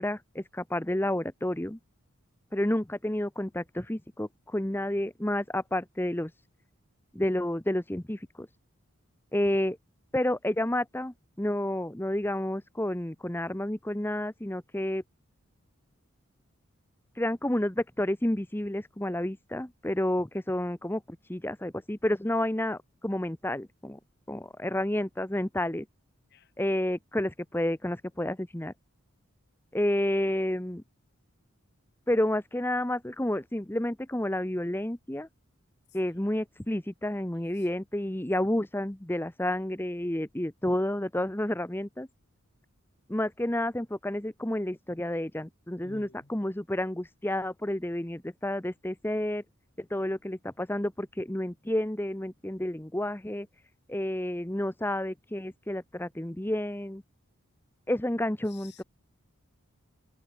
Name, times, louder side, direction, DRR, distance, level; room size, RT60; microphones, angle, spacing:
voice 1, 0.0-1.8 2.5-6.3 7.1-8.5 9.3-9.8 10.1-15.0 17.2-24.0 24.3-25.9 26.6-28.7 29.7-30.8 32.1-35.3 35.9-42.1 43.1-49.4 49.8-53.5 53.9-57.0 57.9-58.8, left 1 dB, 10° left, 0.8 m, -30 dB
voice 2, 37.3-37.7 45.8-46.4 58.4-58.8, left 3 dB, 50° left, 3.2 m, -53 dB
head